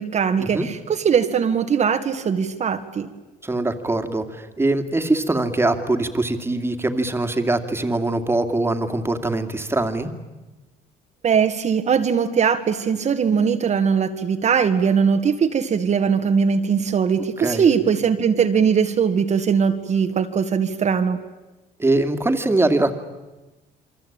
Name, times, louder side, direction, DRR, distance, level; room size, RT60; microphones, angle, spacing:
voice 1, 0.0-3.1 11.2-21.2, right 6 dB, 45° right, 6 dB, 1.7 m, -20 dB
voice 2, 3.4-10.1 17.4-17.7 21.8-22.9, right 2 dB, 15° right, 8 dB, 2.5 m, -22 dB
28.0 x 23.0 x 8.8 m, 1.1 s
cardioid pair, 110°, 17 cm